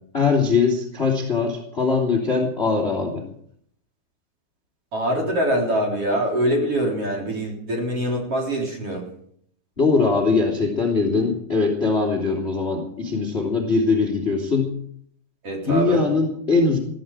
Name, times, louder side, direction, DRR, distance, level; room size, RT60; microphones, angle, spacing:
voice 1, 0.1-3.2 9.8-14.7 15.6-16.8, left 4 dB, 20° left, 2 dB, 2.3 m, -21 dB
voice 2, 4.9-9.0 15.4-16.0, equal, 35° right, -1 dB, 4.2 m, -24 dB
20.5 x 14.5 x 4.9 m, 0.66 s
omnidirectional pair, 5.0 m